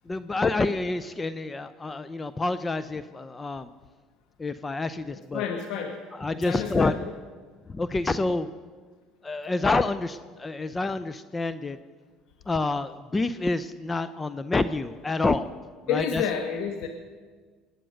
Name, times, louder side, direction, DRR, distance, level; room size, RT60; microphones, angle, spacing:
voice 1, 0.1-3.7 4.4-5.4 6.2-6.9 7.7-8.5 9.2-11.8 12.5-15.5 15.9-16.2, left 3 dB, 20° left, 13 dB, 0.6 m, -28 dB
voice 2, 5.1-6.0 6.3-7.1 15.9-16.9, left 7 dB, 70° left, 5 dB, 1.3 m, -30 dB
20.0 x 9.3 x 6.4 m, 1.5 s
supercardioid pair, 90°, 0 cm